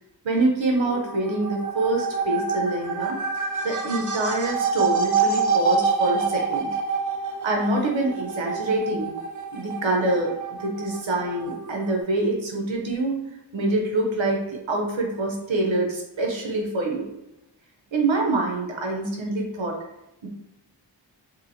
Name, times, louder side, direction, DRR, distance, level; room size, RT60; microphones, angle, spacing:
voice 1, 0.2-6.7 7.4-9.1 9.5-10.3 10.6-13.2 13.5-17.1 17.9-19.8 20.2-20.3, right 2 dB, 85° right, 1 dB, 0.7 m, -25 dB
sound 1, 0.7-12.0, right 5 dB, 45° right, 0.5 m, -27 dB
3.0 x 2.7 x 2.6 m, 0.90 s
wide cardioid pair, 45°, 45 cm